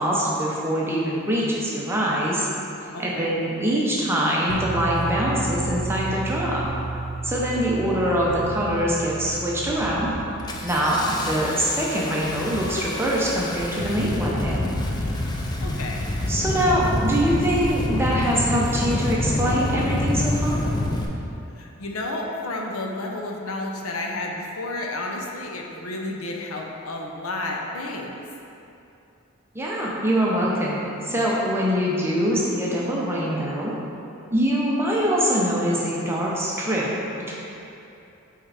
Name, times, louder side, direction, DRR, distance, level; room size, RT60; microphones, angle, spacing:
voice 1, 0.0-2.5 3.0-6.6 7.2-10.1 10.6-14.8 16.3-20.6 29.5-33.7 34.3-36.8 37.3-37.4, equal, 10° right, -5 dB, 0.7 m, -23 dB
voice 2, 2.9-3.3 15.6-16.1 21.5-28.1, left 2 dB, 80° left, 0 dB, 0.7 m, -31 dB
sound 1, 4.5-12.6, right 3 dB, 65° right, 0.5 m, -33 dB
Engine starting, 4.7-4.8 5.5-5.9 6.6-6.9 7.2-7.8 8.2-8.8 9.1-9.3 9.7-21.1, left 1 dB, 20° left, 0.3 m, -27 dB
5.4 x 3.6 x 4.9 m, 2.8 s
head